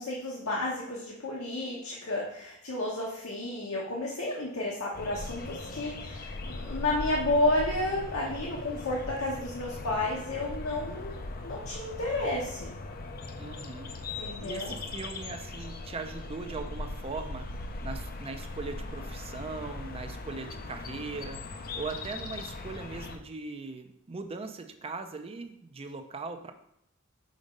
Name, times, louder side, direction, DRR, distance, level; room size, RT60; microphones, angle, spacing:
voice 1, 0.0-11.2 11.4-12.7 14.2-14.7, left 2 dB, 70° left, -4 dB, 1.1 m, -31 dB
sound 1, 4.9-23.2, left 2 dB, 45° left, 0.5 m, -39 dB
voice 2, 13.4-13.9 14.4-17.5 17.8-26.5, right 4 dB, 25° right, 7 dB, 0.5 m, -40 dB
5.1 x 4.1 x 5.2 m, 0.76 s
head